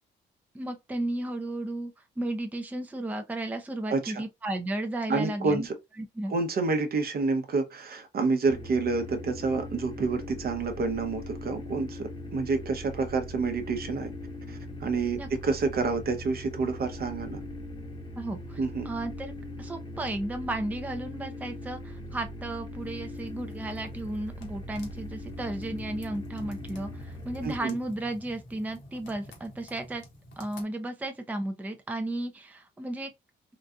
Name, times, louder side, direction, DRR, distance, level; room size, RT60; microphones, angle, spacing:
voice 1, 0.5-5.7 6.2-6.3 15.2-15.3 18.2-18.6 18.8-19.3 19.6-30.0 30.4-33.1, right 1 dB, 10° right, 0.5 m, -34 dB
voice 2, 3.9-4.2 5.1-5.7 6.3-14.1 14.5-17.4 18.6-18.9 27.4-27.7, right 4 dB, 50° right, 0.8 m, -28 dB
sound 1, 8.4-27.6, left 1 dB, 25° left, 0.9 m, -40 dB
sound 2, 22.8-30.6, left 1 dB, 70° left, 1.3 m, -50 dB
3.9 x 2.5 x 2.3 m
cardioid pair, 90°, 20 cm